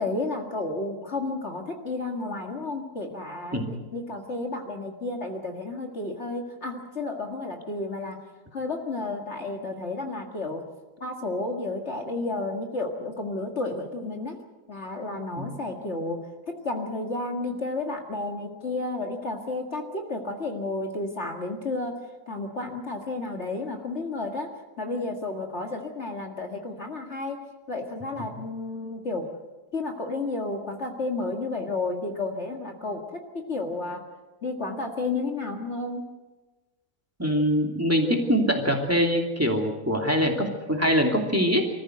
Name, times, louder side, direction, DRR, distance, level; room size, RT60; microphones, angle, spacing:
voice 1, 0.0-3.6 3.9-8.2 8.5-10.6 11.0-14.4 14.7-16.2 16.5-22.0 22.3-24.5 24.8-27.4 27.7-29.3 29.7-34.0 34.4-36.0, left 2 dB, 45° left, 2 dB, 2.1 m, -32 dB
voice 2, 37.2-41.7, equal, 10° right, 2 dB, 2.6 m, -23 dB
25.0 x 14.5 x 7.9 m, 1.2 s
omnidirectional pair, 1.7 m